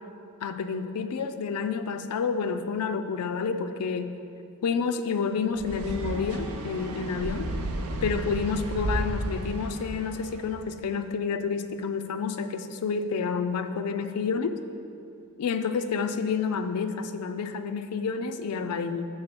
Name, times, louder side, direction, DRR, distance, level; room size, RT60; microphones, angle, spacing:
voice 1, 0.4-4.1 4.6-7.5 8.0-14.5 15.4-19.1, left 5 dB, 80° left, 9 dB, 0.4 m, -29 dB
sound 1, 5.6-10.4, right 1 dB, 75° right, 0.6 m, -33 dB
6.4 x 3.9 x 5.9 m, 2.7 s
head